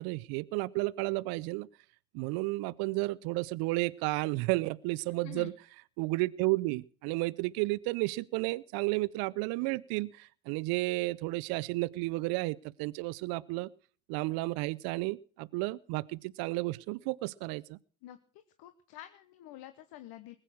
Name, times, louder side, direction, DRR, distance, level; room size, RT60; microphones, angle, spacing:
voice 1, 0.0-1.7 2.1-5.5 6.0-13.7 14.1-17.8, right 22 dB, 65° right, 19 dB, 0.6 m, -32 dB
voice 2, 18.6-20.4, left 14 dB, 65° left, 10 dB, 1.2 m, -48 dB
20.0 x 8.8 x 6.3 m, 0.42 s
hypercardioid pair, 60°, 40 cm